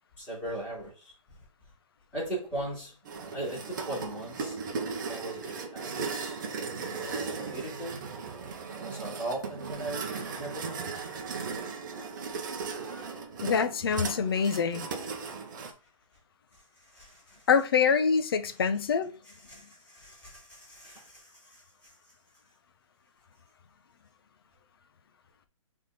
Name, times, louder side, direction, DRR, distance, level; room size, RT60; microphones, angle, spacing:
voice 1, 0.2-1.1 2.1-2.9 3.3-4.6 5.1-6.4 6.8-8.0 8.8-10.9 16.9-17.4 19.5-21.6, right 1 dB, 10° left, 3.3 m, -39 dB
sound 1, 3.0-15.7, right 5 dB, 35° right, 0.9 m, -37 dB
voice 2, 13.4-14.8 17.5-19.1, left 6 dB, 45° left, 0.6 m, -25 dB
6.5 x 3.6 x 4.0 m
hypercardioid pair, 170°, 18 cm